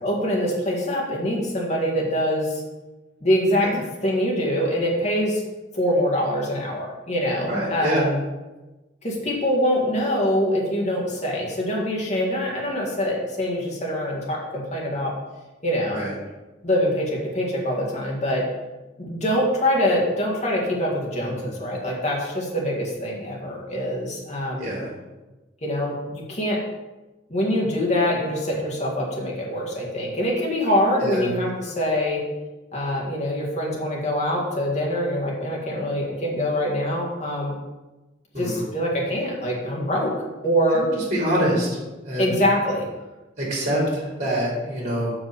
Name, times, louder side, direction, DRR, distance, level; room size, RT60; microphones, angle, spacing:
voice 1, 0.0-2.6 3.2-3.8 4.0-5.4 5.7-8.2 9.0-15.1 15.6-16.0 16.6-18.4 19.0-24.7 25.6-26.6 27.3-32.2 32.7-37.5 38.4-40.1 40.4-40.9 42.2-42.9, equal, 35° left, -2 dB, 1.8 m, -24 dB
voice 2, 7.5-8.1 15.9-16.1 21.2-21.5 24.6-24.9 31.0-31.3 38.3-38.7 40.7-41.7 42.0-42.3 43.4-45.1, equal, 35° right, -4 dB, 2.9 m, -25 dB
6.2 x 4.8 x 6.7 m, 1.1 s
head